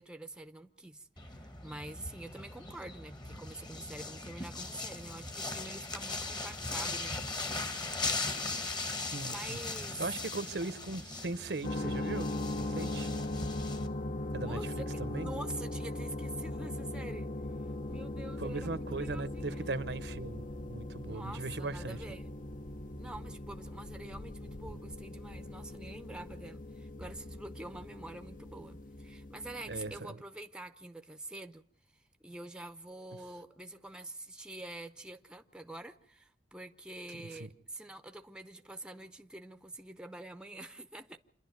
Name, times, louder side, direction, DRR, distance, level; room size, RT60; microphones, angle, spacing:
voice 1, 0.0-7.2 8.8-8.9 9.2-10.0 14.4-17.3 17.9-19.7 21.1-22.3 23.0-31.6 32.2-41.2, right 1 dB, 5° right, 0.8 m, -46 dB
sound 1, 1.2-13.9, left 3 dB, 25° left, 1.4 m, -39 dB
voice 2, 9.0-9.6 10.0-12.3 12.5-13.1 14.3-15.3 18.4-22.0 29.7-30.2 37.4-37.5, right 3 dB, 75° right, 1.0 m, -39 dB
sound 2, 11.6-30.0, left 1 dB, 50° left, 1.0 m, -39 dB
27.0 x 11.0 x 9.5 m
head